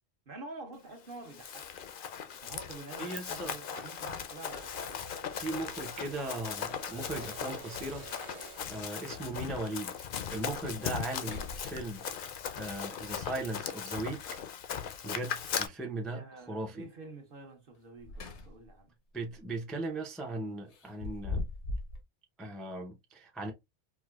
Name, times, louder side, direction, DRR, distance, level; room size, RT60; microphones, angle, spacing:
voice 1, 0.3-1.8 2.4-5.0 9.2-9.5 16.1-18.9, right 3 dB, 55° right, 1.0 m, -48 dB
Run, 1.1-15.7, left 8 dB, 60° left, 0.7 m, -39 dB
voice 2, 3.0-3.6 5.3-8.1 8.7-12.3 12.6-14.4 15.0-16.8 19.1-21.4 22.4-23.5, right 2 dB, ahead, 0.4 m, -38 dB
sound 1, 4.5-8.9, right 5 dB, 90° right, 1.1 m, -50 dB
sound 2, 5.5-5.6 7.2-7.3 7.7-7.8 8.1-8.7 9.2-9.3 9.9-10.0 10.4-10.7 11.1-12.2 14.3-15.0 17.7-18.8 19.2-19.4 20.7-22.0, left 3 dB, 85° left, 1.1 m, -41 dB
4.6 x 2.1 x 2.3 m
omnidirectional pair, 1.1 m